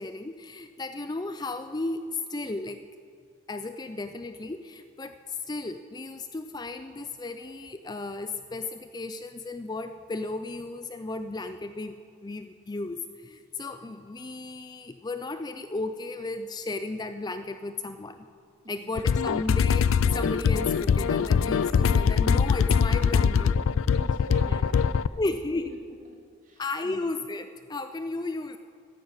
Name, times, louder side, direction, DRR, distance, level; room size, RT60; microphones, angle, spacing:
voice 1, 0.0-2.8 3.5-18.3 18.7-23.5 25.2-25.7 26.6-28.6, left 2 dB, 20° left, 9 dB, 0.4 m, -34 dB
sound 1, 19.0-25.1, left 6 dB, 80° left, 0.4 m, -22 dB
voice 2, 23.3-25.1 25.7-25.8 26.4-27.1, right 1 dB, 40° right, -1 dB, 2.8 m, -44 dB
14.5 x 10.5 x 8.7 m, 2.3 s
head